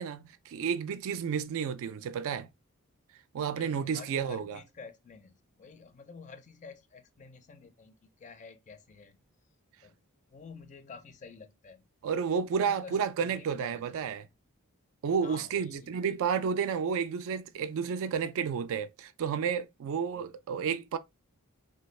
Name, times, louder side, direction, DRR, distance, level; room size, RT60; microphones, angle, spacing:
voice 1, 0.0-2.5 3.3-4.6 12.0-14.3 15.0-21.0, right 6 dB, 65° right, 0.3 m, -31 dB
voice 2, 3.5-9.2 9.8-10.0 10.3-11.8 12.5-14.0 15.2-16.0 20.1-20.3, left 5 dB, 35° left, 0.4 m, -50 dB
3.2 x 2.3 x 3.1 m
head